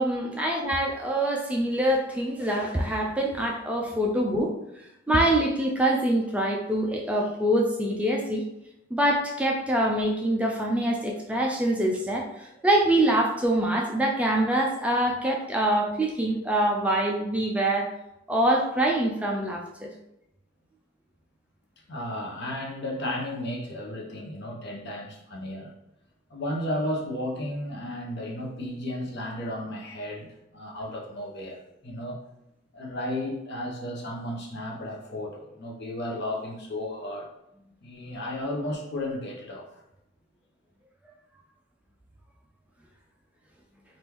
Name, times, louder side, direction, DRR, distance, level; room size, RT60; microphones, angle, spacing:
voice 1, 0.0-4.5 5.1-8.4 8.9-17.9 18.3-19.9, right 1 dB, 5° right, 0.3 m, -25 dB
voice 2, 21.9-25.7 26.3-32.2 32.7-37.3 37.8-39.8, left 1 dB, 60° left, 0.8 m, -34 dB
3.5 x 2.5 x 3.0 m
head